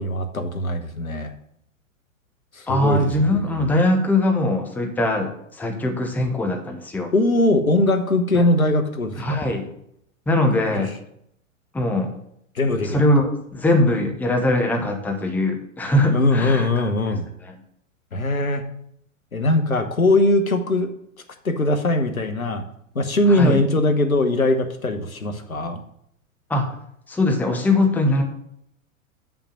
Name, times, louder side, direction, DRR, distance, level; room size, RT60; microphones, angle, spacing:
voice 1, 0.0-1.3 2.6-3.1 3.4-3.7 7.1-9.4 10.7-10.8 12.5-13.0 16.1-17.3 18.1-18.6 19.3-20.9 21.4-22.6 22.9-25.8, left 2 dB, 85° left, 8 dB, 1.2 m, -21 dB
voice 2, 2.7-7.1 8.3-8.4 9.2-9.7 10.3-10.9 11.7-12.1 12.8-16.9 17.4-17.6 23.3-23.6 26.5-26.7 27.1-28.2, left 1 dB, 5° left, 3 dB, 0.9 m, -21 dB
6.6 x 5.9 x 5.8 m, 0.72 s
figure-of-eight pair, 105°, 41 cm